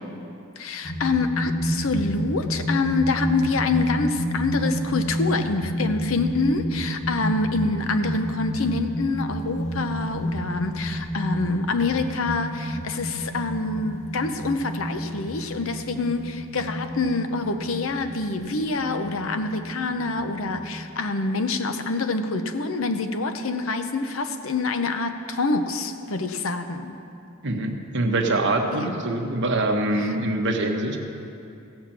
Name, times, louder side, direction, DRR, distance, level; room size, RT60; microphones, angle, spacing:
voice 1, 0.6-27.0 28.8-29.0 30.0-30.2, left 3 dB, 70° left, 8 dB, 0.7 m, -26 dB
sound 1, 0.8-20.7, equal, 35° left, 1.0 m, -30 dB
voice 2, 27.4-31.0, right 2 dB, 60° right, 3 dB, 1.2 m, -24 dB
16.0 x 6.0 x 7.4 m, 2.6 s
head